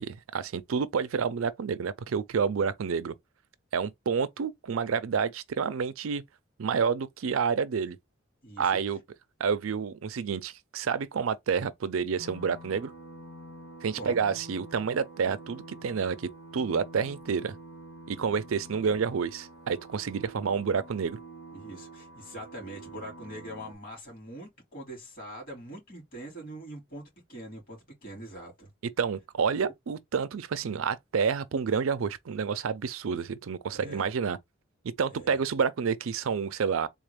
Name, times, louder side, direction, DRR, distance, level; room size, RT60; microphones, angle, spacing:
voice 1, 0.0-3.1 3.7-6.2 6.6-8.0 8.6-9.0 9.4-12.9 13.8-17.5 18.1-21.2 29.0-34.4 34.8-36.9, right 6 dB, 85° right, 0.4 m, -29 dB
voice 2, 8.4-8.8 13.9-14.3 21.5-27.0 27.3-28.7 33.7-34.1 35.1-35.4, right 1 dB, 45° left, 2.5 m, -43 dB
sound 1, 12.2-23.7, right 2 dB, 75° left, 1.0 m, -47 dB
3.7 x 2.5 x 3.2 m
head